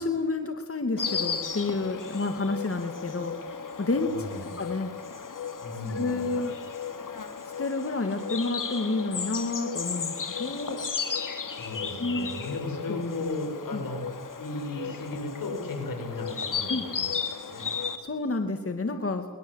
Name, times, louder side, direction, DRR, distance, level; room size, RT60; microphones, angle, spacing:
voice 1, 0.0-3.4 3.8-4.3 4.6-4.9 5.9-6.5 7.4-10.8 12.0-12.3 12.9-13.0 13.7-13.8 16.7-16.8 18.0-19.3, left 3 dB, 40° left, 6 dB, 2.5 m, -29 dB
Insect, 1.0-18.0, left 6 dB, 70° left, 2.6 m, -34 dB
voice 2, 4.0-4.5 5.6-6.3 11.5-14.0 14.4-17.1 17.5-17.6, left 2 dB, 85° left, 2 dB, 6.6 m, -35 dB
23.0 x 21.0 x 8.3 m, 1.4 s
cardioid pair, 55°, 34 cm